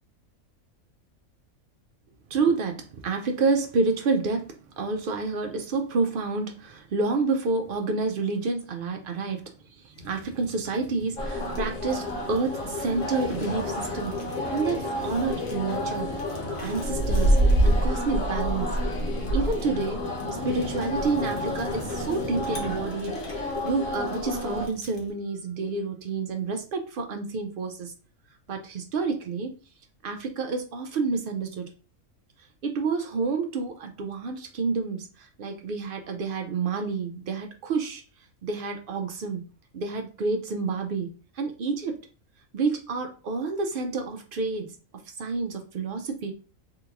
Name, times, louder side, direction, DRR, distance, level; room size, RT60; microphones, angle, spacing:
voice 1, 2.3-14.2 14.5-16.1 16.6-18.8 19.0-20.0 20.3-27.9 28.5-29.5 30.0-31.7 32.6-38.0 38.4-39.4 39.7-42.0 42.5-44.7 45.2-46.3, right 4 dB, 80° right, 4 dB, 0.4 m, -29 dB
Fire, 10.0-25.1, left 1 dB, 45° left, 1.0 m, -41 dB
sound 1, 11.2-24.7, equal, 70° left, 1.2 m, -28 dB
3.6 x 2.9 x 2.4 m, 0.35 s
omnidirectional pair, 1.5 m